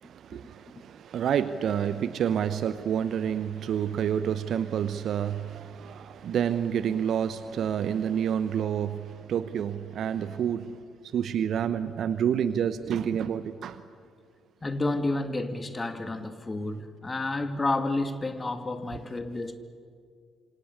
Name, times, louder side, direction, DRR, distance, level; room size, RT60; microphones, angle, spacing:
voice 1, 0.0-10.8 11.1-13.8, right 8 dB, 55° right, 0.9 m, -29 dB
voice 2, 14.6-19.6, left 2 dB, 25° left, 2.5 m, -30 dB
27.0 x 26.5 x 8.2 m
figure-of-eight pair, 45°, 0 cm